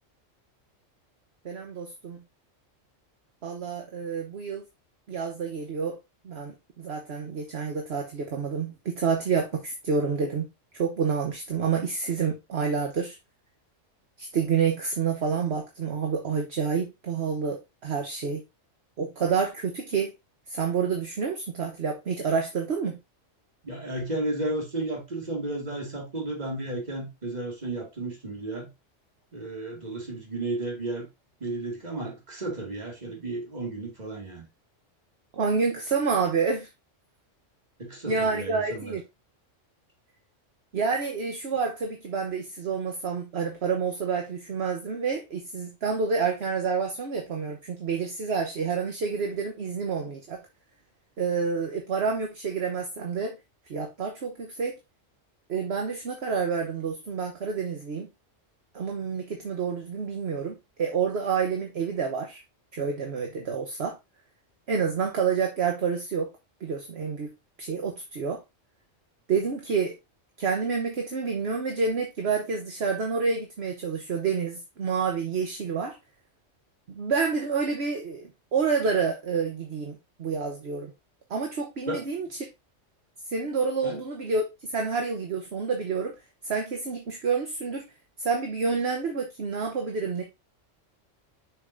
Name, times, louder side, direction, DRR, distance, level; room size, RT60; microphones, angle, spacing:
voice 1, 1.4-2.2 3.4-4.6 5.1-6.0 6.2-13.2 14.2-18.4 19.0-20.1 20.5-23.0 35.3-36.7 38.1-39.0 40.7-50.4 51.2-53.3 53.7-54.8 55.5-58.1 58.7-62.4 62.7-64.0 64.7-66.3 66.6-67.3 67.6-68.4 69.3-69.9 70.4-76.0 76.9-80.9 81.3-82.3 83.3-86.1 86.4-87.9 88.2-90.2, right 5 dB, 60° right, 1.2 m, -28 dB
voice 2, 23.6-28.7 29.3-31.1 31.4-34.5 37.8-39.0 81.9-82.0 83.8-84.0, right 2 dB, 35° right, 2.3 m, -33 dB
6.7 x 5.8 x 2.6 m
omnidirectional pair, 1.3 m